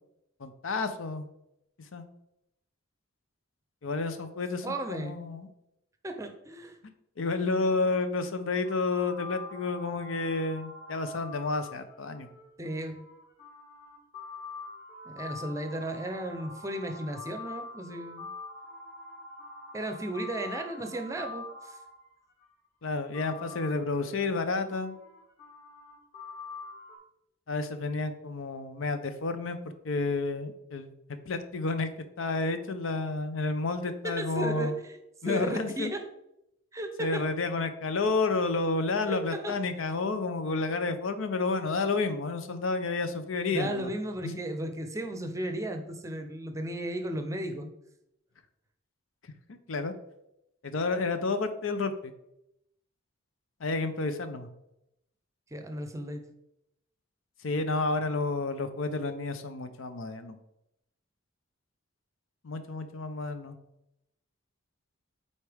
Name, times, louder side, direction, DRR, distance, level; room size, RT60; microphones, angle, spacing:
voice 1, 0.4-1.3 1.9-2.1 3.8-5.5 7.2-12.3 22.8-25.0 27.5-31.9 32.2-34.8 35.2-35.9 37.0-43.9 44.2-44.4 49.5-49.9 50.6-52.1 53.6-54.5 57.4-60.4 62.4-63.6, left 3 dB, 80° left, 9 dB, 0.7 m, -30 dB
voice 2, 4.6-5.2 6.0-6.8 12.6-13.0 15.0-18.3 19.7-21.8 34.0-36.0 36.7-37.2 39.1-39.6 43.5-47.7 55.5-56.3, right 1 dB, 15° right, 6 dB, 0.6 m, -35 dB
sound 1, 8.6-22.5 23.1-27.0, left 3 dB, 40° left, 1.9 m, -45 dB
8.1 x 4.2 x 3.4 m, 0.83 s
head